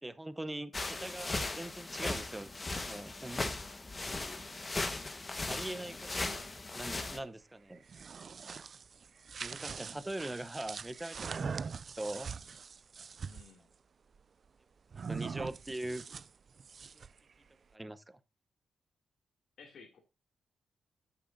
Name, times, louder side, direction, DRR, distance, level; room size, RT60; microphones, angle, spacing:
voice 1, 0.0-2.5 2.8-3.5 5.5-6.2 6.7-7.8 9.4-12.3 15.1-16.0 16.9-17.0 17.7-18.2, right 1 dB, 15° right, 0.8 m, -42 dB
sound 1, 0.7-7.2, left 2 dB, 25° left, 1.3 m, -38 dB
voice 2, 6.2-6.5 13.2-13.7 19.6-20.0, left 5 dB, 75° left, 2.5 m, -55 dB
sound 2, 7.7-13.5 14.9-17.2, right 5 dB, 50° right, 0.4 m, -42 dB
13.0 x 6.7 x 2.6 m
cardioid pair, 100°, 0 cm